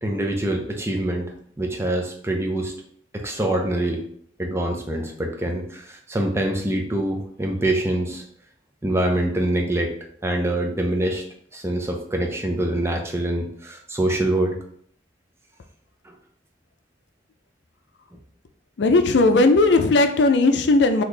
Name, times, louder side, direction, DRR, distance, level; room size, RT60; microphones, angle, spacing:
voice 1, 0.0-2.7 3.1-4.0 4.4-8.2 8.8-9.9 10.2-11.2 11.5-14.6 16.0-16.1, right 1 dB, 15° right, 2 dB, 0.5 m, -25 dB
voice 2, 18.8-21.0, left 2 dB, 80° left, 7 dB, 0.4 m, -17 dB
4.1 x 2.8 x 3.2 m, 0.63 s
head